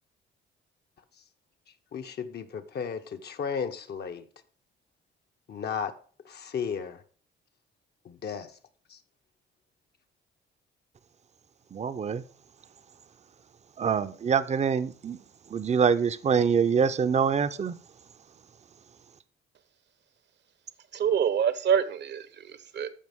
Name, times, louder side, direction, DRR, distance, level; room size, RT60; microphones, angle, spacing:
voice 1, 1.9-4.3 5.5-5.9 6.2-7.0 8.0-8.5 8.9-9.0, left 6 dB, 55° left, 1.1 m, -34 dB
voice 2, 11.7-12.2 13.8-15.2 15.5-17.8, right 6 dB, 35° right, 0.6 m, -25 dB
voice 3, 20.9-22.9, right 8 dB, 60° right, 1.0 m, -26 dB
14.0 x 5.2 x 3.6 m
cardioid pair, 90°, 20 cm